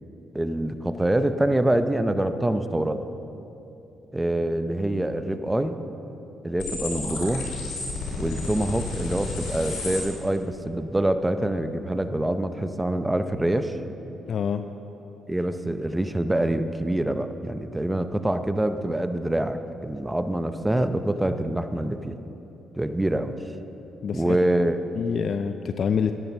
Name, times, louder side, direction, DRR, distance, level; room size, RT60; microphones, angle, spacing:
voice 1, 0.3-3.1 4.1-5.8 6.4-7.5 8.2-13.8 15.3-22.2 22.7-23.4 24.1-24.8, right 1 dB, 10° right, 10 dB, 0.7 m, -25 dB
sound 1, 6.6-10.0, left 3 dB, 85° left, 2.9 m, -32 dB
voice 2, 14.3-14.6 24.0-24.4 24.9-26.1, left 7 dB, 55° left, 8 dB, 0.4 m, -26 dB
10.5 x 9.1 x 6.6 m, 3.0 s
cardioid pair, 75°, 0 cm